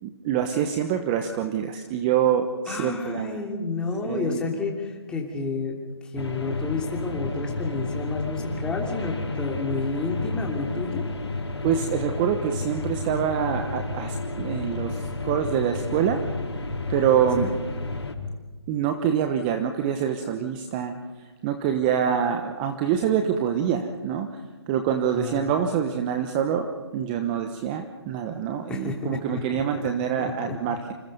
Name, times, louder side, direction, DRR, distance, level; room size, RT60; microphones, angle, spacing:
voice 1, 0.0-3.4 4.0-4.4 11.6-16.2 16.9-17.5 18.7-21.0 21.4-24.3 24.7-26.7 26.9-30.9, right 8 dB, 20° right, 6 dB, 1.1 m, -25 dB
voice 2, 2.7-5.8 6.0-11.0 17.4-17.5 25.1-25.6 28.7-29.9 30.2-30.5, left 3 dB, 5° left, 0 dB, 2.9 m, -30 dB
sound 1, 6.2-18.1, left 2 dB, 85° left, 4.6 m, -31 dB
27.0 x 26.5 x 5.4 m, 1.2 s
figure-of-eight pair, 155°, 14 cm